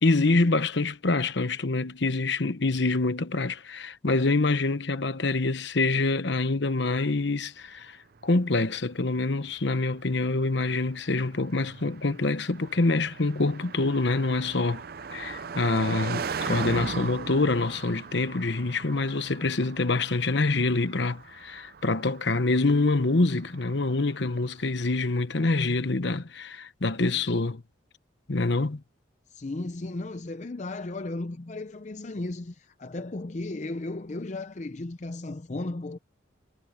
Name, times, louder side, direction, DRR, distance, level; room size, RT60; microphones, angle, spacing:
voice 1, 0.0-8.0 8.2-14.8 15.1-27.6 28.3-28.8, left 3 dB, 60° left, 1.0 m, -26 dB
Car passing by, 8.2-24.6, right 5 dB, 50° right, 0.5 m, -39 dB
voice 2, 29.3-36.0, left 2 dB, 35° left, 0.5 m, -35 dB
head